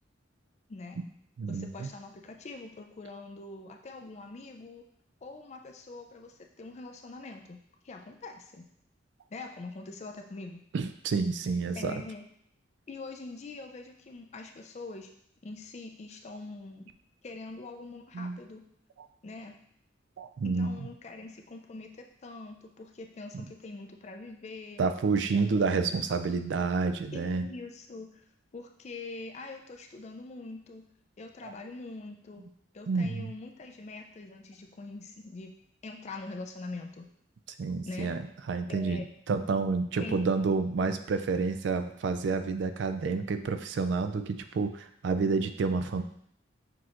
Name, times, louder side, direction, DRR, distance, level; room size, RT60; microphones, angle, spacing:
voice 1, 0.7-1.0 1.5-4.8 5.2-8.7 9.3-10.6 11.8-12.2 12.9-15.1 15.4-16.9 17.2-18.6 19.2-19.6 20.4-24.8 25.3-25.9 27.1-28.2 28.5-30.8 31.2-32.4 32.7-35.5 35.8-37.1 37.9-38.1 38.7-39.1 40.0-40.2 43.0-43.1, left 3 dB, 35° left, 3 dB, 0.4 m, -43 dB
voice 2, 1.4-1.9 10.7-12.0 18.1-18.4 20.2-20.8 24.8-27.5 31.4-31.5 32.9-33.3 37.6-38.2 38.5-39.0 39.3-46.0, right 4 dB, 65° right, 9 dB, 0.3 m, -29 dB
6.1 x 2.9 x 2.5 m, 0.68 s
head